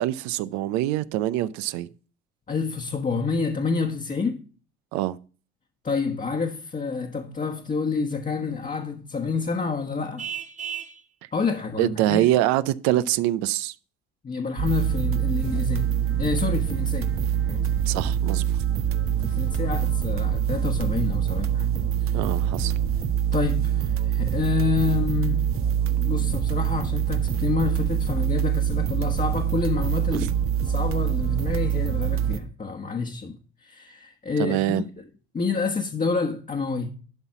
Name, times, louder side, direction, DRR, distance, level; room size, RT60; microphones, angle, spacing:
voice 1, 0.0-1.9 4.9-5.2 11.8-13.7 17.9-18.6 22.1-22.7 30.1-30.2 34.4-34.8, right 14 dB, 75° right, 0.7 m, -24 dB
voice 2, 2.5-4.5 5.8-10.3 11.3-12.3 14.2-17.2 17.5-17.8 19.0-22.2 23.3-25.6 26.0-30.3 30.6-35.1 35.3-36.9, left 4 dB, 25° left, 1.3 m, -28 dB
Vehicle horn car horn honking, 10.2-11.0, right 8 dB, 25° right, 1.0 m, -33 dB
sound 1, 14.6-32.4, right 9 dB, 50° right, 1.1 m, -25 dB
12.0 x 4.1 x 6.0 m
supercardioid pair, 75°, 29 cm